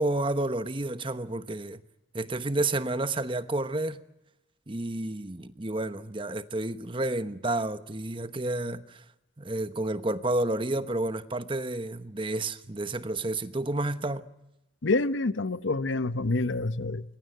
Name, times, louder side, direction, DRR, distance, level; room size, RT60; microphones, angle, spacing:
voice 1, 0.0-1.8 2.1-4.0 4.7-9.0 9.4-14.3, right 2 dB, 25° right, 1.0 m, -30 dB
voice 2, 14.8-17.0, left 3 dB, 80° left, 0.9 m, -27 dB
24.5 x 22.5 x 9.3 m
head